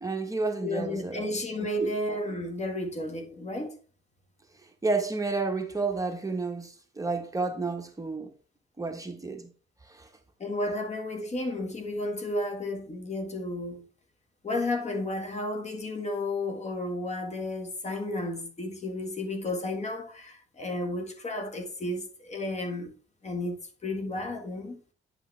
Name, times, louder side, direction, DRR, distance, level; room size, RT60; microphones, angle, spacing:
voice 1, 0.0-1.3 1.6-1.9 4.6-8.3 8.8-9.5 9.8-10.1, right 3 dB, 15° right, 1.2 m, -31 dB
voice 2, 0.6-3.7 10.4-13.9 14.4-22.9 23.2-24.8, left 1 dB, 35° left, 1.7 m, -32 dB
9.6 x 5.9 x 3.3 m
cardioid pair, 90°, 20 cm